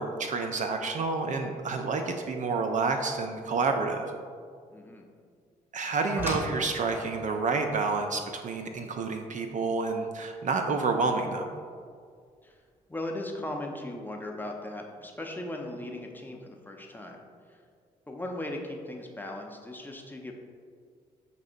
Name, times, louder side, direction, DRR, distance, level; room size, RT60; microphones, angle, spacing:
voice 1, 0.0-4.1 5.7-11.5, right 4 dB, 45° right, 4 dB, 0.4 m, -29 dB
voice 2, 4.7-5.1 12.4-12.6 12.9-17.2 17.5-17.6 18.1-20.3, left 1 dB, 10° left, 1 dB, 0.6 m, -38 dB
sound 1, 5.8-10.9 12.3-12.4 13.0-13.2 13.5-13.6, equal, 10° right, 0.9 m, -40 dB
5.9 x 2.7 x 2.5 m, 2.1 s
hypercardioid pair, 45°, 18 cm